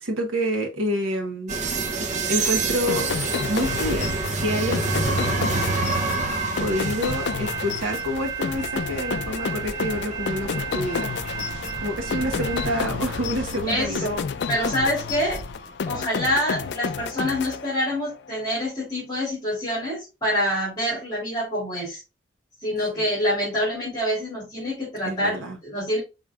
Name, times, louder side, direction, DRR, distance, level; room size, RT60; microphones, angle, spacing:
voice 1, 0.0-1.5 2.3-3.1 3.5-4.1 4.4-4.8 6.6-11.1 11.8-14.1 22.9-23.0 25.0-25.6, equal, 90° right, 1.0 m, -27 dB
sound 1, 1.5-15.6, right 4 dB, 35° right, 0.6 m, -29 dB
sound 2, 2.9-18.2, left 6 dB, 55° left, 0.3 m, -31 dB
sound 3, 6.4-13.9, equal, 65° right, 1.2 m, -40 dB
voice 2, 13.7-15.4 15.9-22.0 22.6-26.0, equal, 20° left, 2.6 m, -26 dB
5.1 x 4.1 x 2.3 m
head